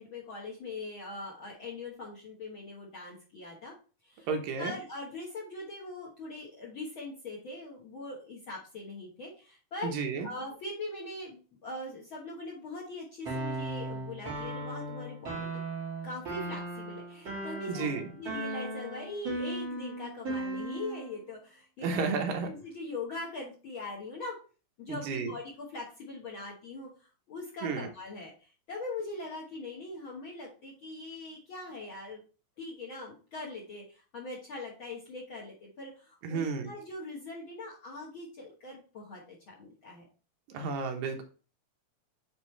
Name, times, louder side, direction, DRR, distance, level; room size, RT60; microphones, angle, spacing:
voice 1, 0.0-3.7 4.0-4.3 4.6-9.9 10.2-15.5 16.0-22.0 22.5-24.3 24.8-32.2 32.6-40.0, left 2 dB, 70° left, -3 dB, 1.2 m, -41 dB
voice 2, 4.3-4.7 9.8-10.3 17.7-18.0 21.8-22.5 24.9-25.3 27.6-27.9 36.2-36.7 40.5-41.2, right 5 dB, 75° right, 4 dB, 2.6 m, -32 dB
sound 1, 13.2-21.1, right 2 dB, 35° right, 2.7 m, -37 dB
8.9 x 3.6 x 3.1 m, 0.36 s
omnidirectional pair, 4.2 m